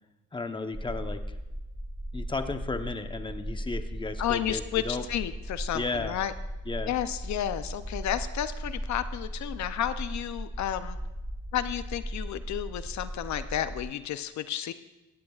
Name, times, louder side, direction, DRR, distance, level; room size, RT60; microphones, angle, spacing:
voice 1, 0.3-1.2 2.1-5.1 5.7-6.2 6.7-6.9, left 3 dB, 15° left, 7 dB, 0.9 m, -34 dB
sound 1, 0.7-13.8, equal, ahead, 2.6 m, -37 dB
voice 2, 4.2-6.3 6.8-11.0 11.5-14.7, left 11 dB, 65° left, 12 dB, 0.6 m, -32 dB
17.0 x 14.5 x 2.4 m, 1.0 s
cardioid pair, 90°, 30 cm